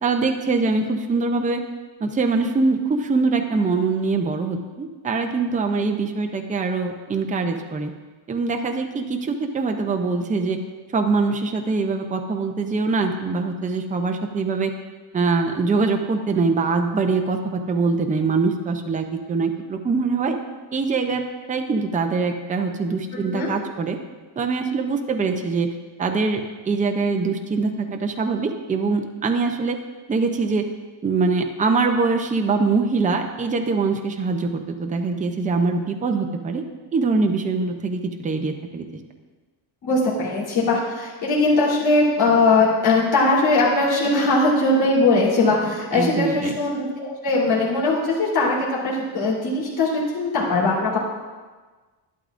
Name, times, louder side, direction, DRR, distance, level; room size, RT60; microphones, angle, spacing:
voice 1, 0.0-1.6 2.0-7.9 8.3-10.6 10.9-14.7 15.1-20.4 20.7-21.2 21.5-24.0 24.4-29.8 30.1-30.7 31.0-36.6 36.9-38.9 45.9-46.5, right 4 dB, 15° right, 5 dB, 0.5 m, -23 dB
voice 2, 23.1-23.5 39.8-51.0, left 2 dB, 50° left, -7 dB, 3.5 m, -20 dB
12.0 x 11.5 x 2.5 m, 1.3 s
cardioid pair, 165°, 47 cm